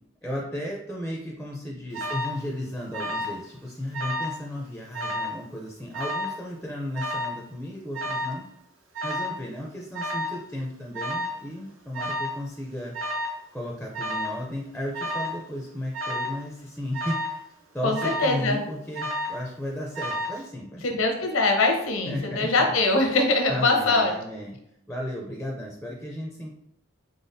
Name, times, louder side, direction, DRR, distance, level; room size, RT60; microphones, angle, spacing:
voice 1, 0.2-8.4 9.0-12.9 13.5-17.4 17.7-21.0 22.1-22.7 23.5-24.6 24.9-26.5, left 1 dB, 5° left, -2 dB, 0.4 m, -34 dB
Alarm, 1.9-2.4 2.9-3.4 3.7-4.4 4.9-5.4 5.9-6.4 6.9-7.4 7.9-8.4 8.9-9.4 9.9-10.4 10.9-11.4 11.9-12.4 12.9-13.4 13.9-14.4 14.9-15.4 15.9-16.4 16.9-17.4 17.9-18.4 18.9-19.4 19.9-20.4, left 1 dB, 80° right, 0.7 m, -31 dB
voice 2, 17.8-18.6 20.8-24.1, left 2 dB, 85° left, 3 dB, 0.8 m, -22 dB
4.0 x 3.5 x 2.6 m, 0.79 s
head